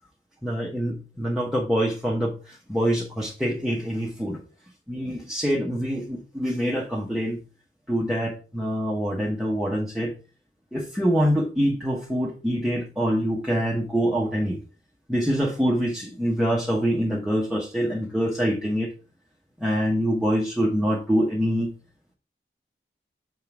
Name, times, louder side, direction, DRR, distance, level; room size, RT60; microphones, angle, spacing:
voice 1, 0.4-4.4 4.9-7.4 7.9-10.1 10.7-14.6 15.1-18.9 19.6-21.7, equal, 5° right, -4 dB, 0.9 m, -25 dB
6.9 x 3.7 x 4.7 m, 0.34 s
head